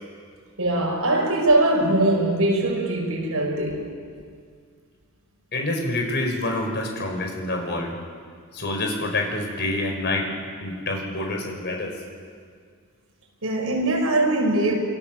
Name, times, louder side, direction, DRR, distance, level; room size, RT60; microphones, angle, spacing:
voice 1, 0.6-3.9 13.4-14.8, right 2 dB, 70° right, 6.7 m, -21 dB
voice 2, 5.5-8.0 8.5-10.3 10.6-12.0, left 2 dB, 50° left, 5.7 m, -27 dB
28.5 x 25.0 x 7.8 m
head